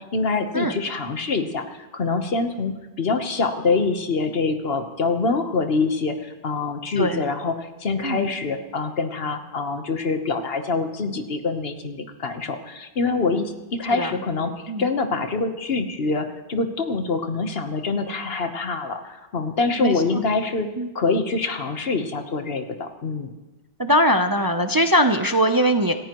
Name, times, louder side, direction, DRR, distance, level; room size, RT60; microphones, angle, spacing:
voice 1, 0.0-14.5 14.8-23.3, left 4 dB, 65° left, 7 dB, 1.3 m, -25 dB
voice 2, 23.8-26.0, equal, 25° right, 7 dB, 0.5 m, -20 dB
27.5 x 14.0 x 3.0 m, 1.1 s
omnidirectional pair, 1.1 m